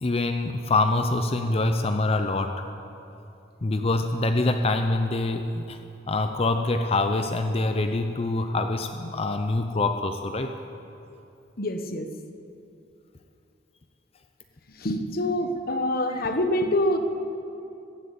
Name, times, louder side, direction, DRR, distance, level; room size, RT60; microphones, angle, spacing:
voice 1, 0.0-2.6 3.6-5.8 6.1-10.5, left 2 dB, 35° left, 7 dB, 0.6 m, -25 dB
voice 2, 11.6-12.1 14.8-17.0, left 1 dB, 55° left, 7 dB, 1.1 m, -25 dB
14.5 x 10.5 x 8.6 m, 2.7 s
head